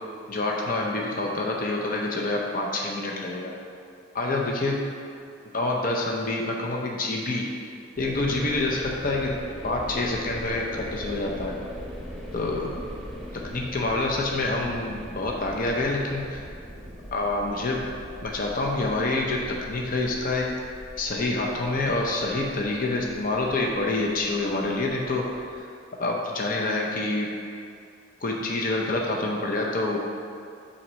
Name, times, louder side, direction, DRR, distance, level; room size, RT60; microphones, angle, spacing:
voice 1, 0.3-3.5 4.1-4.9 5.5-7.5 8.0-9.4 9.6-11.6 12.3-12.7 13.4-16.4 17.1-17.9 18.2-20.5 21.0-25.6 26.0-27.3 28.2-30.0, left 2 dB, 40° left, -1 dB, 0.7 m, -27 dB
sound 1, 8.0-25.6, equal, ahead, 0.8 m, -40 dB
5.9 x 4.3 x 6.2 m, 2.5 s
head